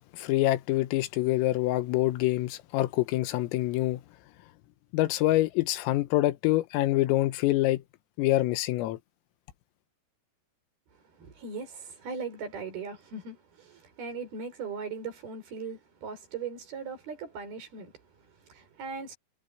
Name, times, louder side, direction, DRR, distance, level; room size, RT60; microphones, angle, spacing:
voice 1, 0.1-4.0 4.9-7.8 8.2-9.0, left 17 dB, 90° left, 3.8 m, -26 dB
voice 2, 11.1-19.2, right 5 dB, 50° right, 6.7 m, -39 dB
omnidirectional pair, 5.8 m